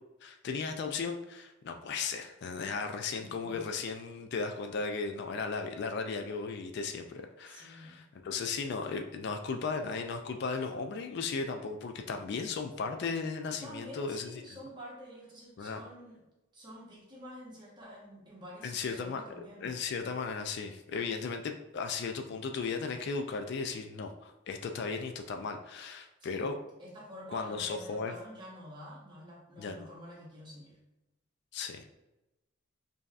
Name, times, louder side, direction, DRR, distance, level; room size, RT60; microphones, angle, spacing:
voice 1, 0.2-14.3 15.6-15.8 18.6-19.2 19.6-26.6 27.3-28.1 29.6-29.9 31.5-31.9, left 4 dB, 55° left, 5 dB, 0.3 m, -36 dB
voice 2, 7.5-8.0 13.6-16.2 16.5-19.7 26.2-26.5 26.8-30.8, equal, 25° right, -5 dB, 1.1 m, -48 dB
5.2 x 2.7 x 2.4 m, 0.99 s
head